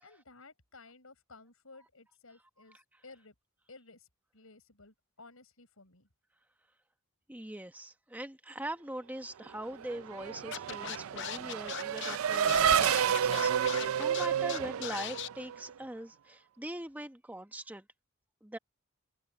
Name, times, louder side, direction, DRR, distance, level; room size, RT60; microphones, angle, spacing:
voice 1, 0.0-3.3 3.7-4.1 4.3-6.1, left 3 dB, 85° left, 5.5 m, -55 dB
voice 2, 7.3-17.8 18.4-18.6, right 1 dB, 10° right, 1.0 m, -42 dB
Race car auto racing / Accelerating revving vroom, 9.6-15.7, right 8 dB, 80° right, 0.4 m, -30 dB
Scratching (performance technique), 10.5-15.3, left 9 dB, 55° left, 0.6 m, -39 dB
open air
head